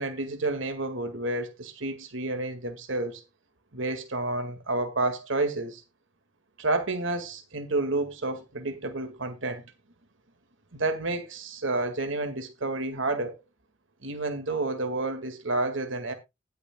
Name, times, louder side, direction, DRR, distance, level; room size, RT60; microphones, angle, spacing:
voice 1, 0.0-3.2 3.7-5.8 6.6-9.6 10.7-13.4 14.0-16.1, right 2 dB, 80° right, 1.9 m, -30 dB
19.5 x 6.7 x 2.2 m
head